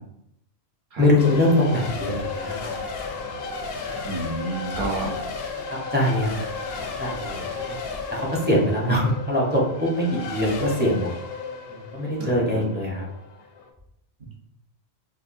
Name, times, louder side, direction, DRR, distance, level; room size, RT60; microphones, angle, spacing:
voice 1, 1.0-2.7 5.7-6.4 7.0-7.8 8.1-11.1 11.7-13.1, left 1 dB, 10° right, -5 dB, 0.8 m, -23 dB
Race car auto racing / Accelerating revving vroom / Mechanisms, 1.2-13.7, left 4 dB, 65° left, 0.8 m, -34 dB
voice 2, 4.0-5.1 12.2-12.7, right 2 dB, 50° right, -1 dB, 1.0 m, -30 dB
4.6 x 2.5 x 2.6 m, 0.78 s
omnidirectional pair, 1.1 m